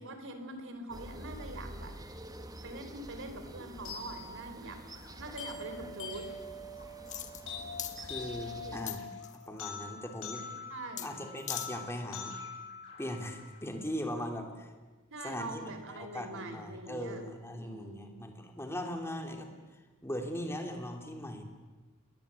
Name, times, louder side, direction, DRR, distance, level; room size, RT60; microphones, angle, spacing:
voice 1, 0.0-2.0 2.6-4.8 5.2-6.3 8.6-8.8 10.7-11.2 15.1-18.1, right 2 dB, 60° right, 8 dB, 3.8 m, -44 dB
sound 1, 0.9-9.0, right 1 dB, 15° right, 1.6 m, -48 dB
sound 2, 3.8-13.9, left 4 dB, 65° left, 7.7 m, -44 dB
sound 3, 7.1-7.5 7.8-8.0 8.9-9.5 11.0-11.1 11.4-11.7 12.1-12.2, left 10 dB, 35° left, 1.7 m, -39 dB
voice 2, 8.0-9.0 9.3-10.4 11.0-12.4 13.0-14.7 15.2-19.5 20.0-21.4, equal, 10° left, 4 dB, 3.1 m, -39 dB
29.0 x 20.5 x 8.4 m, 1.3 s
head